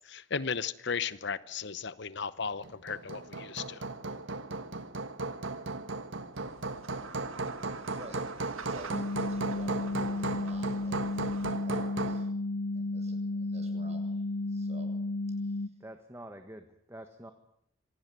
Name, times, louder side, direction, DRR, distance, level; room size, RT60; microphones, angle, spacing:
voice 1, 0.1-3.8, left 6 dB, 55° left, 15 dB, 0.9 m, -35 dB
Hammer, 2.6-12.3, right 3 dB, 65° right, 1.5 m, -36 dB
sound 1, 6.3-11.5, right 4 dB, 85° right, 1.8 m, -48 dB
voice 2, 7.8-11.0 11.6-12.3 12.8-14.9 15.4-15.7, equal, 30° right, 6 dB, 7.0 m, -50 dB
sound 2, 8.9-15.7, left 2 dB, 85° left, 0.9 m, -33 dB
voice 3, 15.8-17.3, right 1 dB, 15° right, 7 dB, 1.5 m, -47 dB
26.0 x 18.0 x 9.3 m, 0.71 s
head